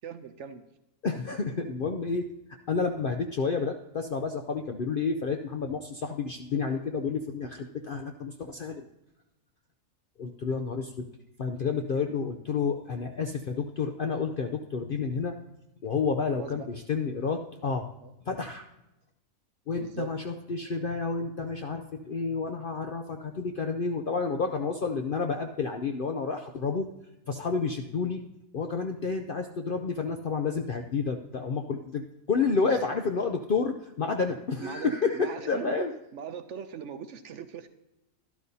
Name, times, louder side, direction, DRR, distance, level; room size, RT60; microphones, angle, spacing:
voice 1, 0.0-0.6 16.3-16.7 18.0-18.1 19.8-20.1 32.6-32.8 34.6-35.8 36.1-37.7, right 7 dB, 65° right, 10 dB, 0.8 m, -39 dB
voice 2, 1.0-2.3 2.7-8.9 10.2-11.1 11.4-15.4 15.8-17.9 18.3-18.7 19.7-26.9 27.3-28.2 28.5-35.9, left 5 dB, 60° left, 5 dB, 0.5 m, -30 dB
12.0 x 12.0 x 2.7 m, 0.92 s
omnidirectional pair, 1.5 m